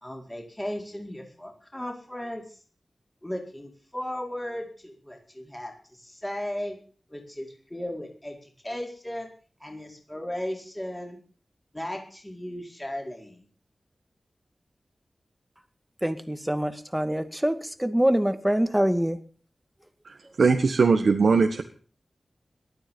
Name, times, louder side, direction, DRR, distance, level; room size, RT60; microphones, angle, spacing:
voice 1, 0.0-2.6 3.2-6.8 7.1-9.3 9.6-11.2 11.7-13.4, left 1 dB, 15° left, 1 dB, 4.6 m, -36 dB
voice 2, 16.0-19.2, equal, 5° right, 9 dB, 2.1 m, -25 dB
voice 3, 20.4-21.6, right 4 dB, 85° right, 5 dB, 1.6 m, -20 dB
18.5 x 12.5 x 5.5 m, 0.43 s
wide cardioid pair, 80°, 0 cm